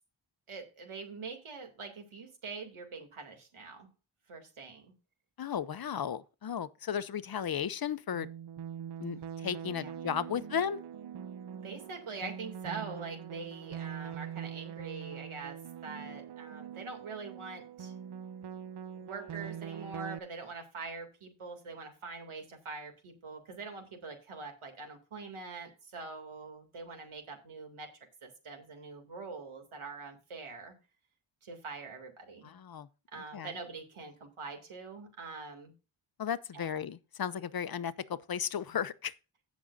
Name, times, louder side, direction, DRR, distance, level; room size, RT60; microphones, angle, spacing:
voice 1, 0.5-3.9 4.3-4.9 9.6-9.9 11.5-15.6 15.8-17.9 18.9-27.9 28.2-30.7 31.4-32.5 33.1-35.7 36.5-36.8, right 4 dB, 80° right, 2.6 m, -44 dB
voice 2, 5.4-8.3 9.0-10.8 32.4-32.9 33.3-33.5 36.2-39.1, left 8 dB, 50° left, 0.6 m, -35 dB
sound 1, 8.1-20.2, right 8 dB, 55° right, 0.6 m, -43 dB
16.5 x 6.2 x 2.6 m
wide cardioid pair, 105°, 49 cm